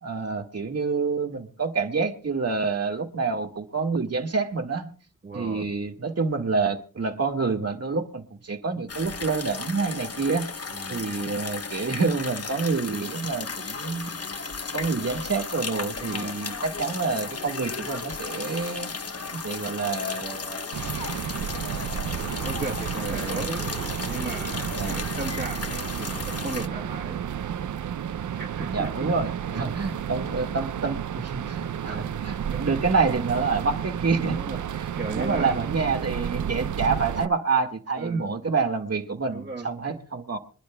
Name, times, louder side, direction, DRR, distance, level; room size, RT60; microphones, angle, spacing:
voice 1, 0.0-4.9 5.3-10.5 10.9-14.2 14.7-18.9 19.3-21.1 21.6-22.2 23.0-23.5 24.7-24.9 28.7-34.4 35.1-40.4, right 4 dB, 50° right, 1.7 m, -28 dB
voice 2, 5.2-5.7 10.7-11.1 16.1-16.3 22.4-23.6 24.1-27.2 28.4-29.1 29.5-29.7 31.9-32.2 32.5-32.6 34.1-34.6 34.9-35.7 38.0-38.4 39.3-40.0, right 3 dB, 35° right, 1.3 m, -36 dB
sound 1, 8.9-26.7, left 4 dB, 50° left, 1.0 m, -34 dB
sound 2, 20.7-37.3, right 9 dB, 70° right, 0.5 m, -32 dB
26.0 x 11.5 x 2.2 m
wide cardioid pair, 110°, 32 cm